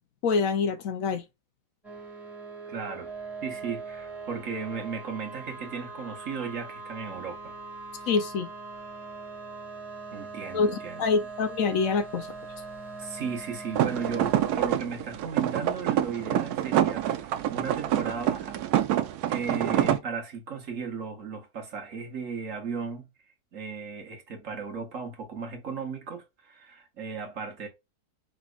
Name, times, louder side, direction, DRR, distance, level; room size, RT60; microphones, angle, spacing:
voice 1, 0.2-1.2 8.1-8.5 10.5-12.3, left 5 dB, 65° left, 1.0 m, -26 dB
sound 1, 1.8-14.6, right 4 dB, ahead, 2.1 m, -41 dB
voice 2, 2.7-3.1 3.4-7.5 10.1-11.1 13.0-18.6 19.3-23.1 23.5-27.7, right 5 dB, 60° right, 1.4 m, -36 dB
sound 2, 13.8-20.0, right 11 dB, 90° right, 1.1 m, -26 dB
5.3 x 3.2 x 2.4 m
omnidirectional pair, 1.6 m